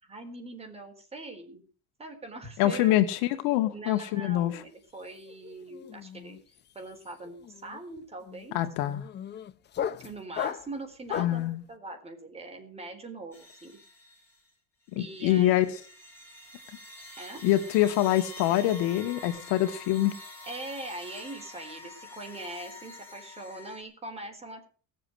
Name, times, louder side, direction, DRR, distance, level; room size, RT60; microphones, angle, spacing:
voice 1, 0.0-1.6 2.0-2.9 3.7-6.4 6.7-8.6 10.0-13.8 15.0-15.5 17.2-17.4 20.4-24.7, right 2 dB, 15° right, 3 dB, 4.0 m, -42 dB
voice 2, 2.6-4.6 8.5-9.1 11.2-11.6 14.9-15.7 17.4-20.1, left 14 dB, 80° left, 8 dB, 2.1 m, -25 dB
sound 1, 4.7-5.0 5.3-11.5, left 9 dB, 25° left, 0.7 m, -37 dB
sound 2, 13.3-14.5 14.9-23.8, left 2 dB, 5° left, 5.4 m, -47 dB
18.0 x 7.7 x 8.0 m, 0.41 s
cardioid pair, 160°, 38 cm